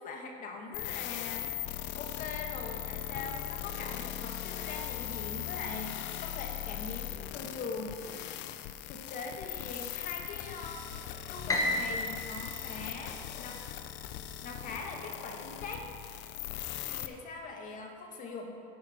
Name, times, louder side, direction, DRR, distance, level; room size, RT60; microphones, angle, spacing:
voice 1, 0.0-1.5 1.9-8.0 8.9-10.9 11.3-13.6 14.4-15.9 16.9-18.5, left 4 dB, 40° left, 2 dB, 1.5 m, -42 dB
sound 1, 0.7-17.1, left 12 dB, 60° left, 0.7 m, -39 dB
Piano, 11.5-13.7, left 1 dB, 15° left, 1.5 m, -33 dB
12.0 x 10.5 x 4.4 m, 2.6 s
cardioid pair, 135°, 21 cm